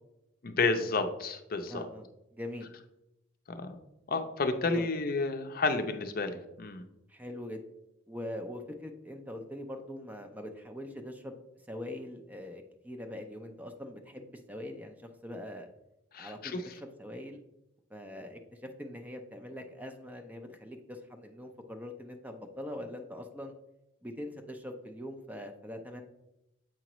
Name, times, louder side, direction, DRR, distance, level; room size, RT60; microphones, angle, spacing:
voice 1, 0.4-1.8 3.5-3.7 4.1-6.8 16.1-16.6, left 3 dB, 50° left, 7 dB, 0.6 m, -31 dB
voice 2, 1.7-2.7 4.7-4.9 7.1-7.6 8.1-11.3 11.7-15.7 16.2-17.4 17.9-23.5 24.0-26.0, left 1 dB, 10° right, 5 dB, 0.5 m, -42 dB
7.6 x 5.0 x 3.0 m, 0.90 s
head